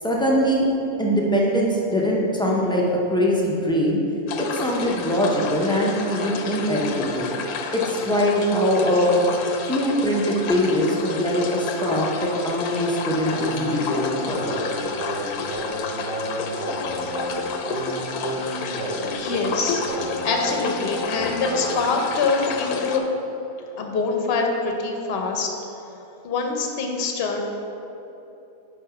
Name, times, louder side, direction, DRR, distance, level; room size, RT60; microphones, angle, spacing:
voice 1, 0.0-0.7 1.0-2.8 3.1-4.0 4.4-7.3 7.7-9.2 9.7-14.4, equal, 5° left, -4 dB, 0.3 m, -22 dB
sound 1, 4.3-23.0, left 4 dB, 85° left, 1.1 m, -30 dB
Singing, 13.3-21.9, right 1 dB, 45° right, 1.0 m, -31 dB
voice 2, 18.1-18.6 19.1-19.8 20.2-23.0 23.8-25.5 26.2-27.4, left 4 dB, 50° left, 2 dB, 0.9 m, -25 dB
6.1 x 5.1 x 4.9 m, 2.9 s
omnidirectional pair, 1.6 m